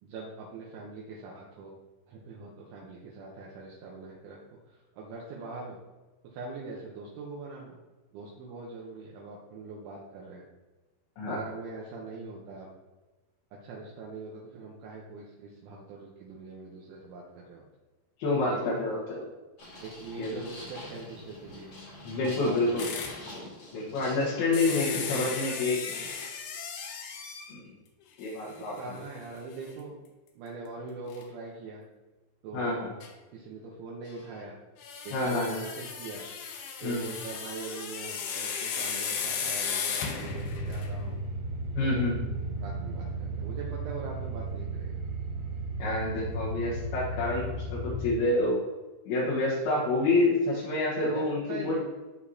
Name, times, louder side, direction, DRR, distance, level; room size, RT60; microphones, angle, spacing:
voice 1, 0.0-1.7 2.1-4.4 4.7-5.8 6.3-7.8 8.1-10.4 11.3-12.7 13.6-17.6 18.4-18.8 19.8-21.7 22.2-23.0 24.3-24.4 24.7-25.3 25.9-26.1 28.4-30.0 30.4-31.8 32.4-32.8 33.3-34.5 35.0-36.2 36.8-41.2 41.8-42.0 42.6-44.9 51.1-51.8, right 3 dB, 75° right, -3 dB, 3.2 m, -42 dB
voice 2, 18.2-19.2 20.2-20.4 22.0-22.8 23.7-25.8 27.5-27.7 28.2-28.7 32.5-32.9 35.1-35.6 36.2-36.4 36.8-37.0 41.7-42.2 45.8-48.6 49.1-51.8, left 2 dB, 65° left, -8 dB, 2.8 m, -28 dB
sound 1, 19.6-25.5, left 1 dB, 40° left, 2.2 m, -46 dB
sound 2, 22.8-23.2 24.5-27.6 28.2-28.3 28.8-28.9 31.1-31.2 33.0-33.1 34.8-41.0, left 6 dB, 85° left, 2.2 m, -35 dB
sound 3, 40.2-48.1, right 2 dB, 55° right, 3.3 m, -35 dB
13.0 x 4.6 x 2.8 m, 1.2 s
omnidirectional pair, 5.9 m